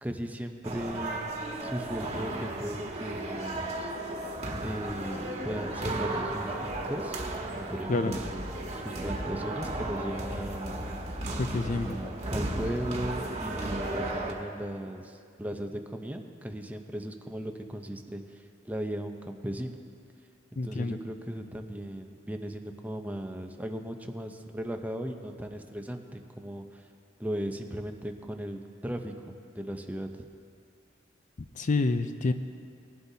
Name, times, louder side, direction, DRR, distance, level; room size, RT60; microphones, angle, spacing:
voice 1, 0.0-1.3 1.6-3.9 4.6-7.2 7.5-10.8 11.7-19.8 20.5-26.9 27.2-30.3, equal, 10° right, 5 dB, 0.7 m, -37 dB
sound 1, 0.6-14.3, right 1 dB, 35° right, 1.4 m, -34 dB
voice 2, 11.4-12.1 20.6-21.0 31.6-32.3, left 3 dB, 40° left, 9 dB, 0.4 m, -28 dB
20.5 x 11.5 x 2.8 m, 2.3 s
head